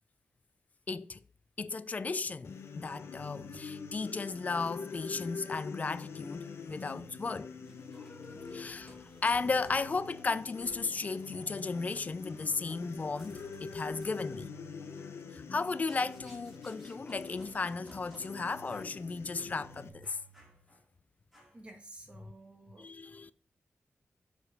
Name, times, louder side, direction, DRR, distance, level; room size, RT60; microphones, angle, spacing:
voice 1, 0.9-1.2 1.6-7.5 7.9-14.5 15.3-20.2 22.8-23.3, left 4 dB, 35° left, 0.4 m, -35 dB
sound 1, 2.4-19.9, left 5 dB, 70° left, 0.7 m, -45 dB
sound 2, 3.2-20.8, right 12 dB, 75° right, 0.7 m, -60 dB
sound 3, 7.6-18.3 18.6-19.0 19.4-19.5 20.0-20.9 21.3-21.7, equal, 5° right, 2.4 m, -59 dB
voice 2, 8.6-8.9 21.5-22.9, right 2 dB, 25° right, 1.6 m, -53 dB
6.8 x 4.6 x 4.9 m
wide cardioid pair, 145°, 4 cm